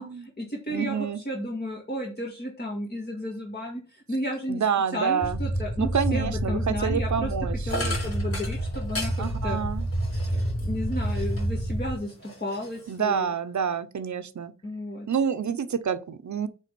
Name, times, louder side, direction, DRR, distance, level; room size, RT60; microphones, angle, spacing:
voice 1, 0.0-4.6 4.9-9.6 10.3-13.3 14.6-15.1, equal, 35° left, 2.0 m, -33 dB
voice 2, 0.7-1.2 4.5-5.4 5.8-7.6 9.2-9.9 12.9-14.5 15.1-16.5, right 7 dB, 75° right, 0.7 m, -28 dB
sound 1, 5.2-12.0, right 1 dB, 5° left, 1.4 m, -29 dB
sound 2, 7.7-11.7 12.0-13.2, left 1 dB, 50° left, 3.2 m, -37 dB
9.2 x 3.5 x 5.3 m
wide cardioid pair, 115°, 29 cm